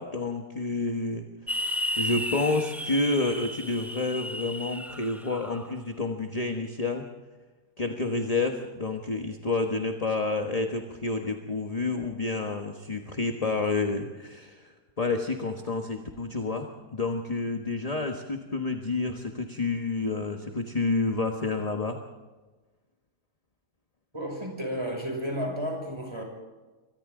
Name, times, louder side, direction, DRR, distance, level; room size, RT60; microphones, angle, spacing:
voice 1, 0.0-1.7 2.0-7.1 7.8-22.0, left 3 dB, 25° left, 4 dB, 1.4 m, -29 dB
sound 1, 1.5-5.7, equal, ahead, 0.8 m, -33 dB
voice 2, 24.1-26.2, equal, 15° right, 1 dB, 6.2 m, -32 dB
27.0 x 24.5 x 3.8 m, 1.2 s
omnidirectional pair, 1.7 m